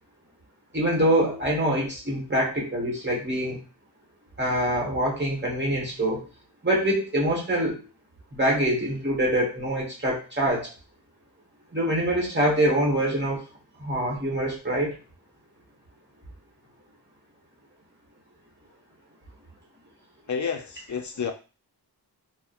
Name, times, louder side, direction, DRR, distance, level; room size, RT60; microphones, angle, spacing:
voice 1, 0.7-3.6 4.4-6.2 6.6-7.8 8.3-10.7 11.7-13.4 13.8-15.0, right 1 dB, 25° right, -3 dB, 1.1 m, -25 dB
voice 2, 20.3-21.3, left 6 dB, 45° left, 6 dB, 0.5 m, -30 dB
2.7 x 2.1 x 2.4 m, 0.32 s
wide cardioid pair, 50°, 40 cm